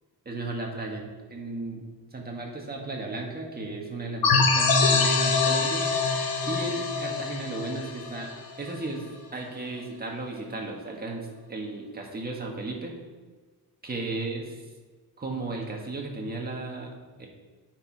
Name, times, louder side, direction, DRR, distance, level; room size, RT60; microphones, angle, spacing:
voice 1, 0.2-1.8 2.1-6.1 6.4-9.1 9.3-12.9 13.8-14.4 15.2-16.9 17.2-17.3, right 2 dB, 25° right, 0 dB, 1.5 m, -35 dB
sound 1, 4.2-8.7, left 4 dB, 65° left, 1.1 m, -24 dB
9.4 x 4.8 x 4.5 m, 1.4 s
wide cardioid pair, 130°, 37 cm